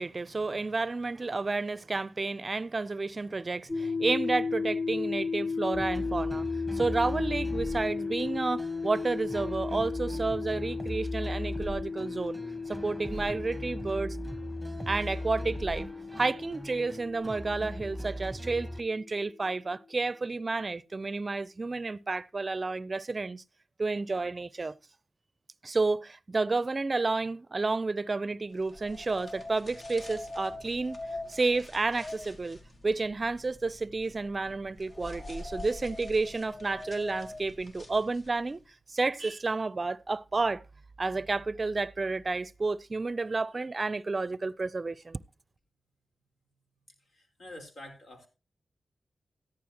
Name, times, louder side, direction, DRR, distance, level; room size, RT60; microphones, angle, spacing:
voice 1, 0.0-6.5 6.7-12.4 12.7-14.2 14.9-15.9 16.2-23.4 23.8-24.7 25.6-31.0 31.3-38.6 38.9-40.6 41.0-45.2, right 3 dB, 45° right, 0.5 m, -31 dB
sound 1, 3.7-19.2, left 4 dB, 30° left, 2.7 m, -35 dB
sound 2, 5.7-18.8, equal, 5° right, 1.1 m, -39 dB
sound 3, 28.6-38.6, left 2 dB, 55° left, 2.4 m, -44 dB
voice 2, 47.1-48.3, left 1 dB, 75° left, 4.0 m, -47 dB
14.5 x 11.0 x 2.9 m
cardioid pair, 50°, 0 cm